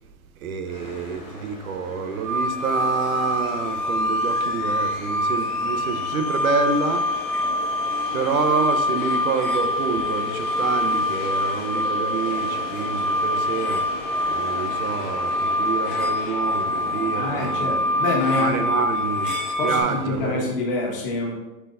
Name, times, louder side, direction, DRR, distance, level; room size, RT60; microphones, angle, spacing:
voice 1, 0.4-7.1 8.1-13.8 14.3-17.8 18.4-19.4 19.6-20.5, right 5 dB, 65° right, 0.9 m, -27 dB
sound 1, 0.6-20.5, left 2 dB, 20° left, 1.4 m, -37 dB
sound 2, 2.2-19.8, left 1 dB, 35° right, 1.5 m, -25 dB
voice 2, 17.1-18.7 19.6-21.3, left 2 dB, 35° left, 1.5 m, -26 dB
9.6 x 4.6 x 2.6 m
hypercardioid pair, 175°, 45 cm